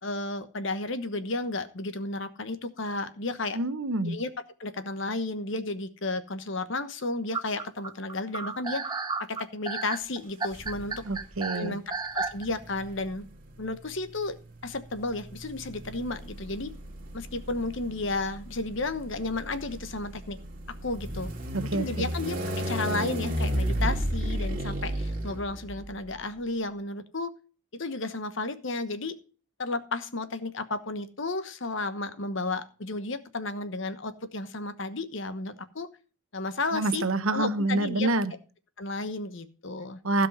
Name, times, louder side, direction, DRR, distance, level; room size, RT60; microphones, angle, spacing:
voice 1, 0.0-3.6 4.1-4.3 4.6-8.8 9.3-11.0 11.5-11.8 12.1-13.3 13.6-16.7 17.1-20.4 20.7-21.3 21.7-27.3 27.7-29.2 29.6-35.9 36.3-38.1 38.8-40.0, left 2 dB, 60° left, 11 dB, 1.1 m, -33 dB
voice 2, 3.5-4.2 11.1-11.8 21.5-22.1 36.7-38.3 40.0-40.3, right 2 dB, 75° right, 12 dB, 1.0 m, -27 dB
sound 1, 7.3-12.4, right 4 dB, 20° right, 0.7 m, -32 dB
sound 2, 10.5-11.2 12.3-26.0, equal, 40° right, 2.5 m, -33 dB
16.0 x 5.3 x 5.5 m, 0.37 s
head